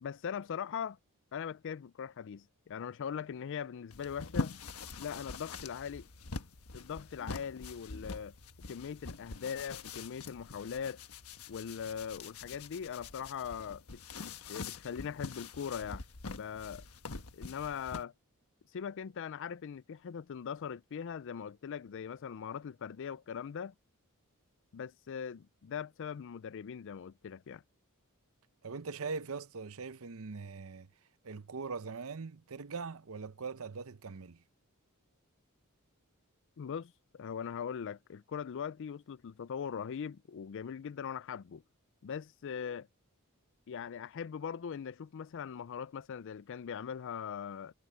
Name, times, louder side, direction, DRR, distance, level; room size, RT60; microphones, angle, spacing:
voice 1, 0.0-1.0 1.3-4.6 5.0-6.1 6.7-8.4 8.7-11.0 11.5-16.0 16.3-16.8 17.3-18.1 18.7-23.7 24.7-27.6 36.6-41.6 42.0-42.9 43.7-47.7, left 7 dB, 60° left, 0.4 m, -41 dB
sound 1, 3.9-18.0, left 4 dB, 75° left, 1.3 m, -44 dB
voice 2, 28.6-30.9 31.2-34.4, right 4 dB, 70° right, 0.7 m, -41 dB
head